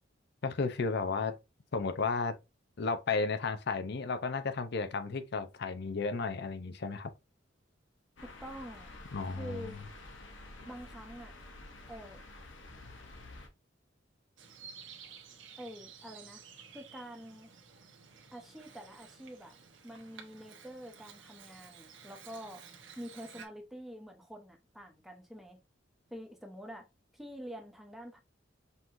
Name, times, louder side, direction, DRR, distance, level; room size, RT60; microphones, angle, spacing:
voice 1, 0.4-1.4 1.7-2.4 2.8-7.1 9.1-9.8, left 4 dB, 60° left, 0.6 m, -33 dB
sound 1, 8.2-13.5, left 2 dB, 85° left, 0.9 m, -50 dB
voice 2, 8.2-9.0 9.3-9.8 10.7-11.3 11.9-12.2 15.6-16.4 16.7-17.5 18.3-19.5 19.8-22.6 23.0-25.6 26.1-26.9 27.1-28.2, equal, ahead, 0.8 m, -46 dB
Bird vocalization bird call bird song, 14.4-23.5, right 6 dB, 85° right, 1.0 m, -53 dB
5.6 x 3.0 x 2.6 m
head